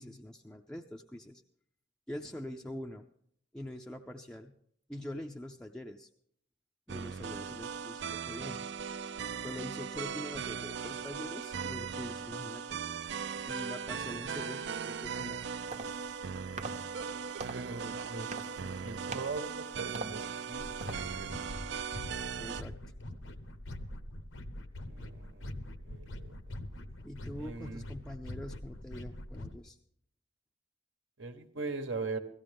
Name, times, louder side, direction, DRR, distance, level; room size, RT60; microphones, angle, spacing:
voice 1, 0.0-1.4 2.1-3.1 3.5-4.6 4.9-6.1 6.9-8.7 9.4-12.8 13.5-15.4 22.4-22.8 27.0-29.8, left 1 dB, 5° left, 1 dB, 0.4 m, -44 dB
sound 1, 6.9-22.6, right 6 dB, 60° right, 0.4 m, -39 dB
sound 2, 15.3-21.4, right 3 dB, 35° right, 0.8 m, -46 dB
voice 2, 17.5-21.3 24.8-25.5 25.9-26.3 27.4-27.8 31.2-32.2, right 3 dB, 75° right, 6 dB, 1.2 m, -41 dB
sound 3, 20.6-29.6, left 1 dB, 85° left, 0.9 m, -44 dB
17.0 x 14.5 x 3.5 m, 0.68 s
head